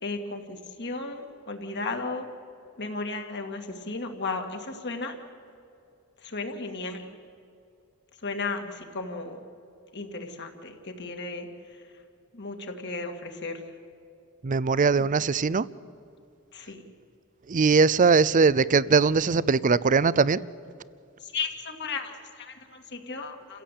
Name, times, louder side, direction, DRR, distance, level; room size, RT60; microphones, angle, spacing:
voice 1, 0.0-2.3 2.8-5.2 6.2-7.1 8.2-9.4 9.9-11.5 12.3-13.6 15.0-15.1 16.5-16.8 21.2-23.6, left 3 dB, 55° left, 4 dB, 2.5 m, -35 dB
voice 2, 14.4-15.7 17.5-20.4, right 4 dB, 35° right, 19 dB, 0.5 m, -21 dB
29.0 x 16.0 x 8.5 m, 2.5 s
head